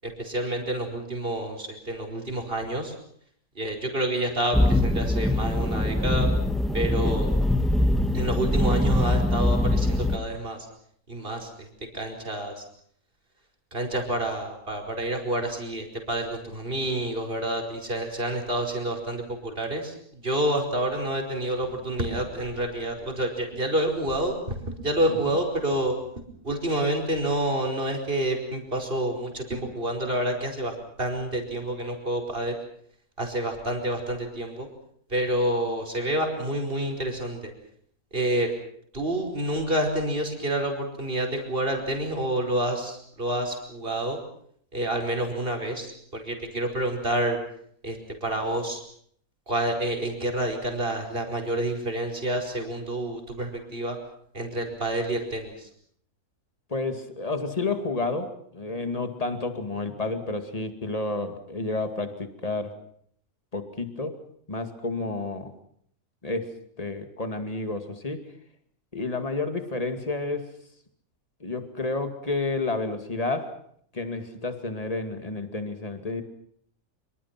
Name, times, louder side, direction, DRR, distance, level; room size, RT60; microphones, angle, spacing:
voice 1, 0.2-2.9 3.6-6.3 6.7-7.3 8.1-10.6 11.1-11.7 11.9-12.6 13.7-19.9 20.2-24.3 24.8-25.9 26.4-32.5 33.2-34.7 35.1-37.5 38.1-38.5 38.9-44.2 44.7-47.4 47.8-48.8 49.5-54.0 54.3-55.5, right 1 dB, 40° right, 3 dB, 5.1 m, -28 dB
sound 1, 4.5-10.2, left 1 dB, ahead, 1.8 m, -23 dB
voice 2, 56.7-62.7 63.5-64.2 64.5-65.5 66.2-66.5 66.8-68.2 68.9-70.5 71.4-73.6 73.9-76.2, left 3 dB, 25° left, 7 dB, 2.5 m, -30 dB
25.5 x 25.5 x 6.0 m, 0.64 s
omnidirectional pair, 1.6 m